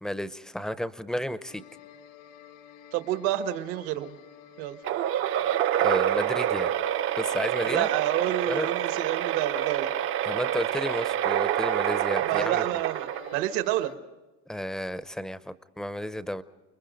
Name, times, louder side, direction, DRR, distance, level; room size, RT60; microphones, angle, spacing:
voice 1, 0.0-1.6 5.8-6.7 7.2-7.9 8.5-8.7 10.3-12.6 14.5-16.4, equal, ahead, 13 dB, 0.6 m, -32 dB
sound 1, 1.5-13.9, left 8 dB, 70° left, 1.8 m, -50 dB
voice 2, 2.9-4.2 4.6-4.8 7.7-9.9 12.2-13.9, right 13 dB, 75° right, 9 dB, 1.3 m, -29 dB
sound 2, 4.8-13.6, right 11 dB, 45° right, 0.6 m, -27 dB
30.0 x 21.5 x 5.1 m, 1.2 s
cardioid pair, 140°, 31 cm